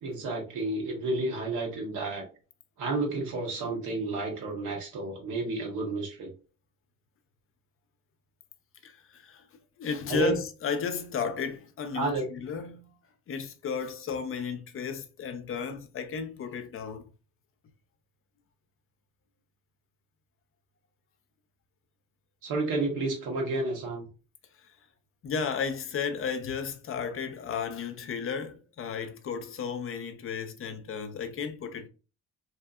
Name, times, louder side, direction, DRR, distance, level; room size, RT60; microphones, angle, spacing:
voice 1, 0.0-2.2 2.8-6.3 10.1-10.4 11.9-12.2 22.4-24.1, right 2 dB, 85° right, 1.0 m, -31 dB
voice 2, 8.8-9.4 9.8-12.9 13.3-17.1 25.2-31.9, left 5 dB, 45° left, 0.5 m, -33 dB
2.7 x 2.6 x 2.3 m
cardioid pair, 90°, 30 cm